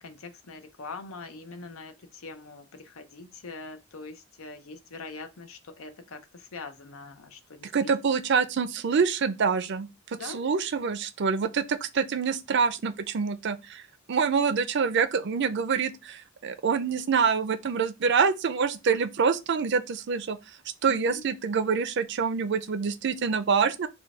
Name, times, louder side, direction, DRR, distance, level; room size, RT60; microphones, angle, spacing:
voice 1, 0.0-7.9 10.2-10.5 20.9-21.2, left 3 dB, 85° left, 0.7 m, -43 dB
voice 2, 7.6-13.8 14.1-20.4 20.8-23.9, right 6 dB, 55° right, 0.5 m, -26 dB
4.3 x 2.3 x 4.7 m
head